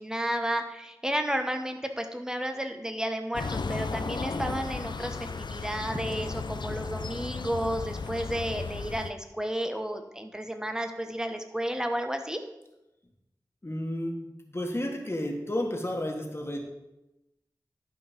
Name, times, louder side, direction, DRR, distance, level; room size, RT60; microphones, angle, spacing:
voice 1, 0.0-12.4, right 1 dB, 10° right, 6 dB, 1.1 m, -32 dB
sound 1, 3.3-9.1, left 4 dB, 75° left, 0.5 m, -35 dB
voice 2, 13.6-16.6, left 1 dB, 35° left, 2 dB, 1.7 m, -32 dB
11.5 x 5.5 x 5.2 m, 0.94 s
wide cardioid pair, 60°, 8 cm